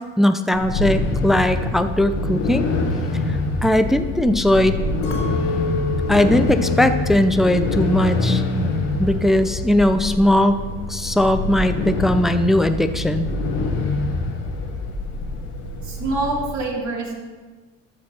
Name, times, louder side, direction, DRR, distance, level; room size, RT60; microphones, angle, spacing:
voice 1, 0.2-2.7 3.6-4.8 6.1-8.4 9.0-10.6 10.9-13.3, left 1 dB, ahead, 9 dB, 0.6 m, -19 dB
sound 1, 0.5-16.5, left 2 dB, 80° left, 1.5 m, -25 dB
Chink clink, 5.0-9.4 9.8-10.4, left 2 dB, 60° left, 2.7 m, -32 dB
voice 2, 15.8-17.1, right 2 dB, 50° right, -2 dB, 3.2 m, -25 dB
13.5 x 5.2 x 5.7 m, 1.3 s
hypercardioid pair, 65°, 37 cm